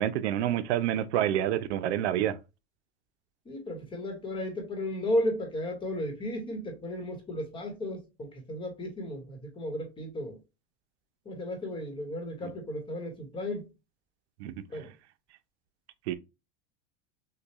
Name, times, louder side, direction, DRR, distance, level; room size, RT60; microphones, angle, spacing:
voice 1, 0.0-2.4 14.4-14.5 16.1-16.2, right 11 dB, 80° right, 0.7 m, -28 dB
voice 2, 3.5-10.4 11.2-13.7 14.7-14.9, left 1 dB, 15° left, 1.1 m, -34 dB
6.6 x 2.3 x 3.0 m
supercardioid pair, 165°, 34 cm